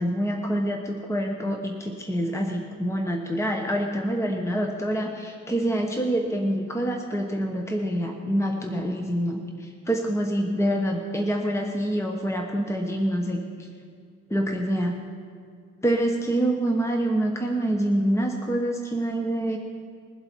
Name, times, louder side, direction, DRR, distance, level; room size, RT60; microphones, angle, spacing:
voice 1, 0.0-13.4 14.3-15.0 15.8-19.6, right 1 dB, 10° left, 2 dB, 1.2 m, -26 dB
22.0 x 7.7 x 4.6 m, 2.2 s
cardioid pair, 90°, 30 cm